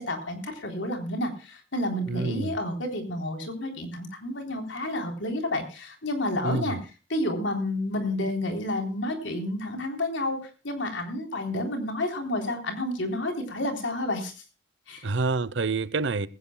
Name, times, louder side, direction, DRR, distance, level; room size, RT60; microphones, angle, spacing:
voice 1, 0.0-6.8 7.1-14.3 14.9-15.1, left 1 dB, 85° left, 3.6 m, -30 dB
voice 2, 2.1-2.5 6.4-6.8 15.0-16.3, right 3 dB, 75° right, 0.8 m, -27 dB
20.0 x 16.5 x 2.2 m
head